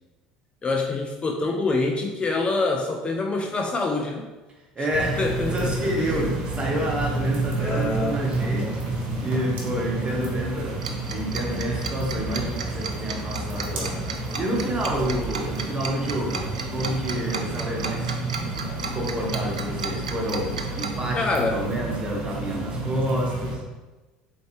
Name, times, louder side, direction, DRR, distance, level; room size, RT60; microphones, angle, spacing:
voice 1, 0.6-4.3 4.8-6.1 7.2-7.3 7.6-8.7 21.1-21.6, left 3 dB, 30° left, 2 dB, 0.4 m, -26 dB
voice 2, 4.7-5.2 5.5-14.0 14.4-18.1 18.8-23.6, equal, 25° right, -1 dB, 1.1 m, -29 dB
sound 1, 4.9-23.5, right 2 dB, 55° right, 1.1 m, -30 dB
Tick-tock, 10.8-20.9, right 5 dB, 85° right, 0.3 m, -33 dB
4.0 x 3.2 x 3.0 m, 1.2 s
hypercardioid pair, 70°, 4 cm